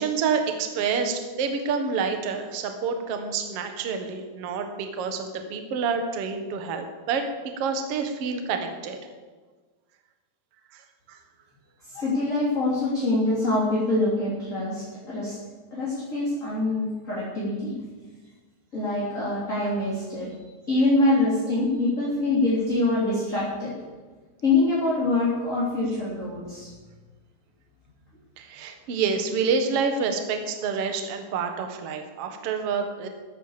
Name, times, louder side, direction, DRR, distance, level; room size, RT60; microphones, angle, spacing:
voice 1, 0.0-7.2 7.6-9.0 10.7-10.8 11.1-11.2 28.4-33.1, right 5 dB, 85° right, 5 dB, 1.3 m, -28 dB
voice 2, 11.9-15.4 15.7-17.7 18.7-20.3 20.7-23.7 24.4-26.7, left 2 dB, 20° left, -7 dB, 3.0 m, -24 dB
14.0 x 10.0 x 7.4 m, 1.3 s
omnidirectional pair, 5.2 m